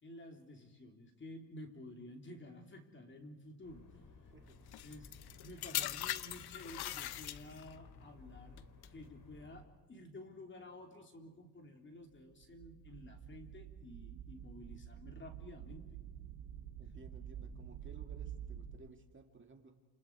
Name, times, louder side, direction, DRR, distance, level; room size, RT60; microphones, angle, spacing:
voice 1, 0.0-4.0 4.8-8.7 8.9-16.0, left 1 dB, 25° left, 4 dB, 3.4 m, -52 dB
sound 1, 3.6-9.6, left 4 dB, 50° left, 4.1 m, -57 dB
voice 2, 4.3-4.7 16.8-19.8, right 4 dB, 30° right, 4 dB, 2.2 m, -58 dB
sound 2, 4.7-7.8 8.6-8.9, left 13 dB, 65° left, 1.0 m, -40 dB
sound 3, 12.1-12.2 12.4-18.7, right 9 dB, 85° right, 3.7 m, -48 dB
29.5 x 28.0 x 4.7 m, 1.2 s
cardioid pair, 115°, 42 cm